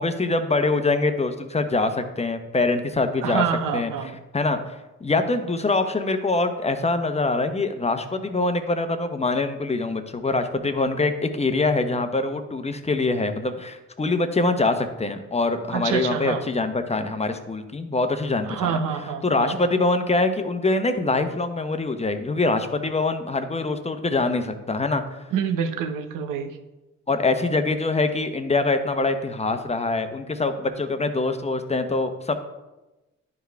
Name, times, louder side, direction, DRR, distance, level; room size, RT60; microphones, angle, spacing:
voice 1, 0.0-3.4 3.7-3.9 4.3-4.7 5.0-18.8 19.2-25.0 27.1-32.3, left 3 dB, 20° left, 8 dB, 0.9 m, -24 dB
voice 2, 3.2-4.1 15.7-16.4 18.4-19.6 25.3-26.6, right 7 dB, 75° right, 7 dB, 0.8 m, -27 dB
10.5 x 4.6 x 3.5 m, 1.0 s
supercardioid pair, 60°, 32 cm